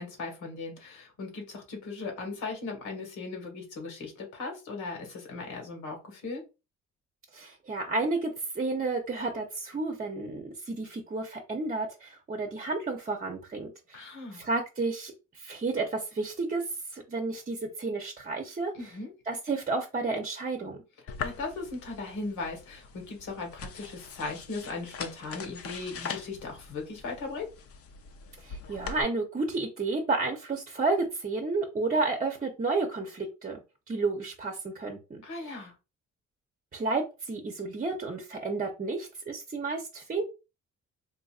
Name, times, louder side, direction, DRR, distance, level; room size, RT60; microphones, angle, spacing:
voice 1, 0.0-6.4 13.9-14.4 18.7-19.1 21.2-27.5 35.2-35.7, left 3 dB, 80° left, 2 dB, 1.6 m, -38 dB
voice 2, 7.3-16.6 16.9-18.9 19.3-20.8 28.4-33.6 33.9-35.5 36.7-40.2, right 3 dB, 30° right, 3 dB, 0.7 m, -31 dB
sound 1, 21.1-29.0, left 6 dB, 50° left, 0.6 m, -42 dB
3.9 x 2.6 x 2.4 m, 0.29 s
cardioid pair, 90°, 30 cm